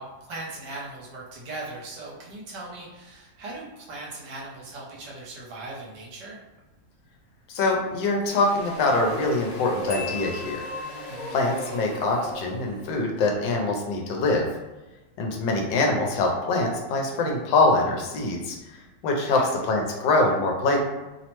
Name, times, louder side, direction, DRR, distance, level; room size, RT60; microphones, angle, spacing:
voice 1, 0.0-6.4 11.1-11.4 19.3-19.6, right 2 dB, 70° right, -4 dB, 1.3 m, -39 dB
voice 2, 7.5-10.7 11.3-14.5 15.2-18.6 19.0-20.8, left 2 dB, 80° left, 1 dB, 1.3 m, -24 dB
sound 1, 8.3-12.8, left 1 dB, 65° left, 1.1 m, -43 dB
sound 2, 8.8-13.5, equal, 55° right, 0.5 m, -38 dB
Marimba xylophone, 9.9-11.3, left 6 dB, 35° left, 0.9 m, -38 dB
3.2 x 2.0 x 2.9 m, 1.1 s
omnidirectional pair, 2.0 m